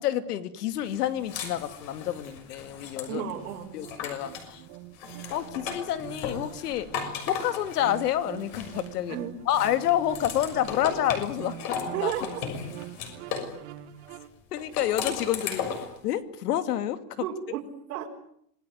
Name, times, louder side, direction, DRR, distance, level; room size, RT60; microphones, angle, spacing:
voice 1, 0.0-3.2 3.7-4.6 5.3-6.9 7.3-9.2 9.5-12.1 14.5-15.6 16.0-17.0, left 11 dB, 80° left, 11 dB, 2.7 m, -28 dB
sound 1, 0.9-4.5 4.9-9.1 9.5-13.5 14.6-16.0, left 6 dB, 40° left, 6.4 m, -36 dB
sound 2, 3.0-14.3, right 13 dB, 45° right, 1.9 m, -45 dB
voice 2, 3.1-3.7 9.1-9.3 11.4-11.5 11.9-12.2 17.2-17.6 17.9-18.0, right 10 dB, 80° right, -1 dB, 4.8 m, -32 dB
26.5 x 20.0 x 9.5 m, 0.70 s
supercardioid pair, 170°, 46 cm